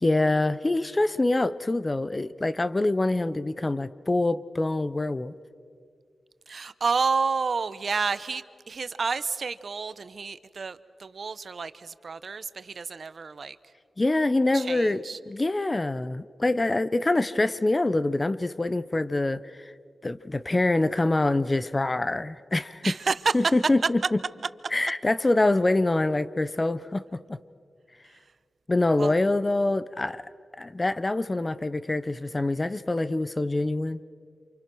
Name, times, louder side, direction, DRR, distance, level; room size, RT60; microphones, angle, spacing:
voice 1, 0.0-5.3 14.0-19.4 20.0-22.9 23.3-24.2 24.7-27.4 28.7-30.2 30.6-34.0, left 2 dB, 25° left, 15 dB, 0.6 m, -25 dB
voice 2, 6.5-13.6 14.5-15.2 22.8-23.3 29.0-29.1, right 5 dB, 55° right, 15 dB, 0.7 m, -30 dB
29.5 x 27.5 x 6.2 m, 2.1 s
wide cardioid pair, 140°, 0 cm